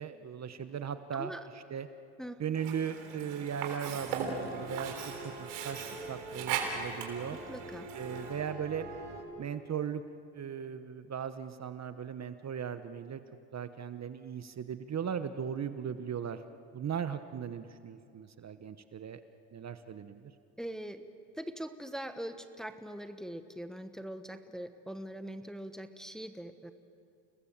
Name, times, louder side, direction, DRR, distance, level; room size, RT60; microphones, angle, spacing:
voice 1, 0.0-1.9 2.4-7.4 7.9-8.9 9.4-10.0 10.3-13.2 13.5-16.4 16.7-19.2 19.5-20.3, right 8 dB, 35° right, 11 dB, 1.1 m, -38 dB
voice 2, 1.1-1.5 2.2-2.4 7.3-7.9 20.6-21.0 21.3-26.7, right 1 dB, ahead, 8 dB, 1.2 m, -42 dB
Sink (filling or washing), 2.5-8.5, right 6 dB, 80° right, 4.2 m, -39 dB
sound 1, 4.0-9.2, right 2 dB, 60° right, 4.7 m, -45 dB
30.0 x 20.0 x 7.4 m, 2.5 s
supercardioid pair, 100°, 48 cm